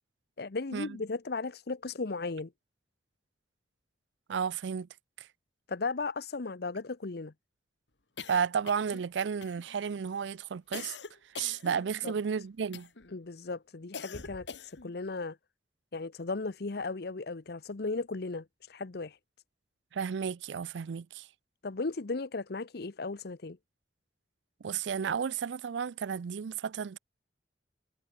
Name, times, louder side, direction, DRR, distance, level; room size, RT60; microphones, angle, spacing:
voice 1, 0.4-2.5 5.7-7.3 12.0-12.1 13.1-15.4 15.9-19.2 21.6-23.6, left 3 dB, 60° left, 0.8 m, -36 dB
voice 2, 4.3-4.9 8.3-10.9 11.4-12.9 19.9-21.3 24.6-27.0, right 7 dB, 90° right, 0.4 m, -32 dB
sound 1, 8.2-9.1 9.4-9.9 10.7-12.2 12.7-13.2 13.9-14.9, left 5 dB, 80° left, 1.6 m, -44 dB
head